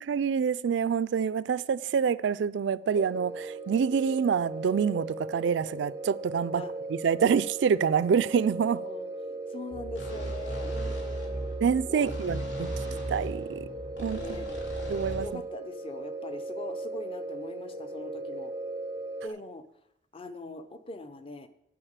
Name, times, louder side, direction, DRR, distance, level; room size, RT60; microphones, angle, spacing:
voice 1, 0.0-6.6 6.9-8.8 11.6-12.7 13.1-13.7 14.0-14.5 14.9-15.4, right 6 dB, 70° right, 0.3 m, -27 dB
sound 1, 2.9-19.3, right 2 dB, 15° right, 0.5 m, -38 dB
voice 2, 9.5-11.5 11.9-12.2 14.1-14.5 15.2-18.5 19.2-19.6 20.1-21.5, left 2 dB, 30° left, 0.6 m, -41 dB
sound 2, 9.7-15.3, right 1 dB, 85° left, 2.4 m, -37 dB
10.0 x 4.8 x 7.3 m
head